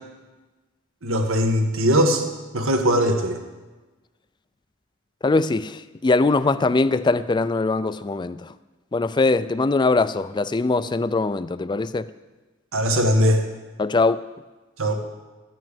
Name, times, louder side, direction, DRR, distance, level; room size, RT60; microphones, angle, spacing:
voice 1, 1.0-2.2 2.5-3.4 12.7-13.4 14.8-15.0, equal, 85° right, 1.5 m, -20 dB
voice 2, 5.2-8.5 8.9-12.1 13.8-14.2, left 3 dB, 20° left, 0.4 m, -21 dB
13.5 x 6.1 x 8.9 m
head